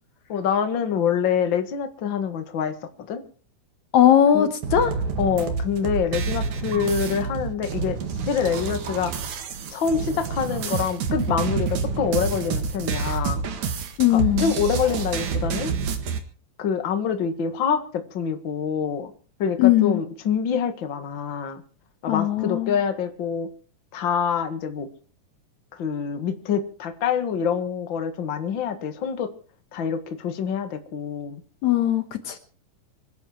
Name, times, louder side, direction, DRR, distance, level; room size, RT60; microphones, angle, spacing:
voice 1, 0.3-2.7 3.1-3.2 4.3-4.5 5.2-8.0 8.3-9.1 9.7-13.5 14.1-15.7 16.6-19.1 19.4-21.6 22.0-23.5 23.9-24.9 25.7-29.3 29.7-31.4, left 7 dB, 45° left, 8 dB, 2.1 m, -26 dB
voice 2, 3.9-5.0 14.0-14.5 19.6-20.0 22.1-22.8 31.6-32.4, left 11 dB, 70° left, 9 dB, 2.4 m, -19 dB
sound 1, 4.6-16.2, right 5 dB, 65° right, 3.2 m, -28 dB
25.5 x 11.5 x 4.5 m, 0.41 s
omnidirectional pair, 3.7 m